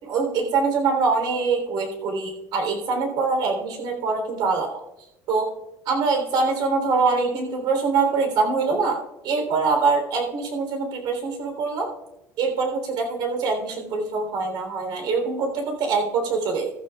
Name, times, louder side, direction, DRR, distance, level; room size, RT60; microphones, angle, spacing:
voice 1, 0.0-4.7 5.3-5.5 5.8-9.0 9.2-11.9 12.4-16.7, right 4 dB, 60° right, 3 dB, 3.4 m, -24 dB
14.5 x 13.5 x 2.4 m, 0.90 s
cardioid pair, 140°, 9 cm